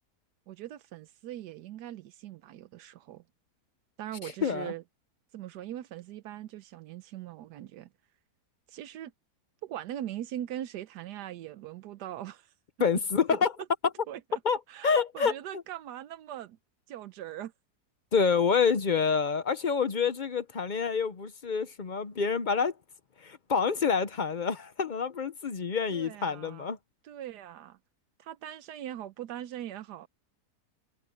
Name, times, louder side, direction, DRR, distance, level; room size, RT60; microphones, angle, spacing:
voice 1, 0.5-3.2 4.0-4.8 5.3-7.9 8.7-9.1 9.6-12.5 13.3-13.4 14.1-14.4 14.7-16.6 16.9-17.5 25.9-26.7 27.0-27.8 28.2-30.1, right 12 dB, 85° right, 1.3 m, -41 dB
voice 2, 4.2-4.7 12.8-13.5 14.4-14.6 14.8-15.3 18.1-22.7 23.2-26.8, left 6 dB, 50° left, 0.6 m, -27 dB
omnidirectional pair, 1.7 m